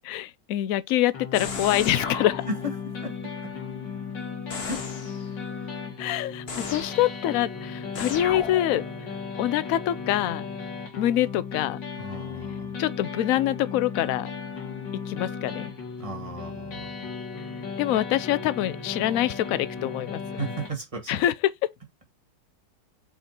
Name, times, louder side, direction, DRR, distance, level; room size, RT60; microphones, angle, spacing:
voice 1, 0.0-2.4 6.0-6.4 6.7-8.8 9.4-10.5 11.0-11.8 12.8-14.3 15.1-15.7 17.8-20.2 21.1-21.3, left 13 dB, 65° left, 0.9 m, -25 dB
sound 1, 1.1-20.7, left 5 dB, 85° left, 2.7 m, -36 dB
sound 2, 1.3-2.8 4.5-5.3 6.5-7.4 7.9-9.0, left 4 dB, 40° left, 1.1 m, -35 dB
voice 2, 5.2-5.9 12.0-12.7 16.0-17.1 20.3-21.3, right 1 dB, 20° right, 1.8 m, -35 dB
5.9 x 4.4 x 4.1 m
omnidirectional pair, 1.9 m